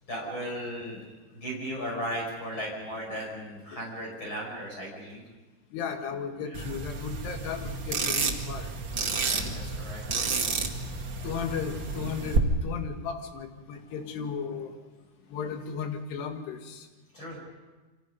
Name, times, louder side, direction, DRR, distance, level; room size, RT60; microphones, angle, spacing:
voice 1, 0.1-1.0 1.3-5.2 9.2-10.0 17.1-17.4, equal, 25° left, -1 dB, 6.5 m, -36 dB
voice 2, 5.7-8.8 9.1-9.9 11.0-14.9 15.3-16.9, left 6 dB, 65° left, 5 dB, 3.8 m, -36 dB
sound 1, 6.5-12.4, right 4 dB, 65° right, 1.1 m, -31 dB
29.0 x 25.5 x 5.4 m, 1.2 s
omnidirectional pair, 5.4 m